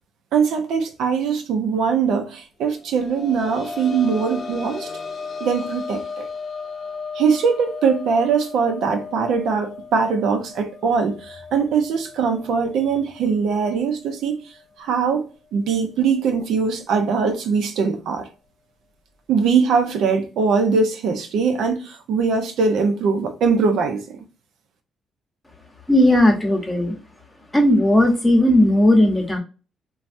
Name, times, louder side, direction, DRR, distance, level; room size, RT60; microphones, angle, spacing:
voice 1, 0.3-4.9 5.4-6.3 7.1-14.4 14.8-15.2 15.5-18.3 19.3-24.2, right 5 dB, 80° right, 0.6 m, -21 dB
sound 1, 2.8-14.2 14.6-14.7 16.2-16.3, left 4 dB, 40° left, 0.6 m, -35 dB
voice 2, 25.9-27.0 27.5-29.4, left 1 dB, 15° left, 0.9 m, -16 dB
3.2 x 2.2 x 2.5 m
cardioid pair, 90°, 0 cm